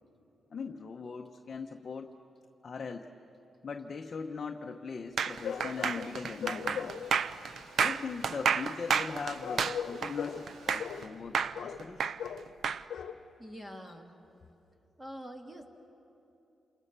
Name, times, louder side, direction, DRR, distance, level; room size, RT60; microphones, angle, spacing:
voice 1, 0.5-2.1 2.6-3.1 3.6-6.9 7.8-12.0, left 5 dB, 35° left, 3 dB, 0.9 m, -40 dB
sound 1, 5.2-11.0 11.3-12.8, right 6 dB, 55° right, 0.6 m, -30 dB
Stream, 5.3-11.1, right 2 dB, 80° right, 3.0 m, -53 dB
sound 2, 5.4-6.1 6.4-7.2 9.4-10.5 10.8-11.1 11.5-11.8 12.2-12.5 12.9-13.2 13.6-13.7 13.9-14.0, left 7 dB, 80° left, 1.0 m, -38 dB
voice 2, 13.4-14.1 15.0-15.7, equal, 10° right, 3 dB, 1.8 m, -45 dB
29.0 x 28.0 x 6.8 m, 2.9 s
wide cardioid pair, 170°, 0 cm